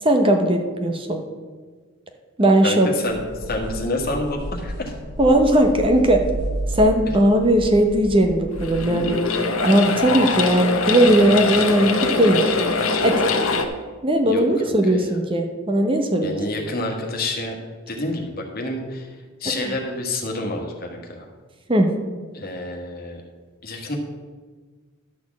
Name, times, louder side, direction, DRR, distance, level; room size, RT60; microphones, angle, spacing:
voice 1, 0.0-1.2 2.4-2.9 5.2-6.2 6.7-9.2 9.6-12.4 13.0-13.2 14.0-16.4 19.6-19.7 21.7-21.9, right 1 dB, 25° right, 4 dB, 0.8 m, -18 dB
voice 2, 2.6-4.9 14.2-15.1 16.2-17.6 17.9-19.1 19.4-21.2 22.3-23.2 23.6-23.9, left 2 dB, 45° left, 1 dB, 1.5 m, -28 dB
sound 1, 3.1-9.1, right 1 dB, 85° right, 2.9 m, -32 dB
sound 2, 8.5-13.7, left 4 dB, 75° left, 1.0 m, -23 dB
11.5 x 4.3 x 7.1 m, 1.4 s
head